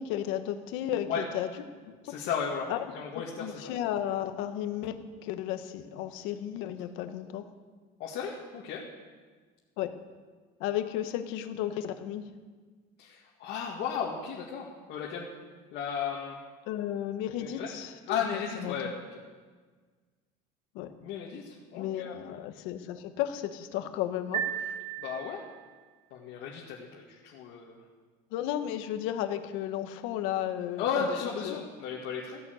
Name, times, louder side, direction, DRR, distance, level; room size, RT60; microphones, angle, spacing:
voice 1, 0.0-1.5 1.9-2.3 2.7-2.9 3.1-7.5 9.8-10.0 10.6-12.3 16.7-18.7 20.7-20.9 21.8-24.7 28.3-31.0 31.4-31.6, left 11 dB, 90° left, 8 dB, 1.4 m, -34 dB
voice 2, 2.0-3.7 8.0-8.8 13.0-15.3 15.7-16.4 17.4-17.7 18.1-18.9 21.0-22.1 25.0-25.4 26.1-27.8 30.8-32.4, left 6 dB, 60° left, -3 dB, 2.2 m, -34 dB
sound 1, 24.3-25.8, right 9 dB, 45° right, 1.6 m, -35 dB
15.5 x 11.0 x 8.0 m, 1.4 s
cardioid pair, 175°, 20 cm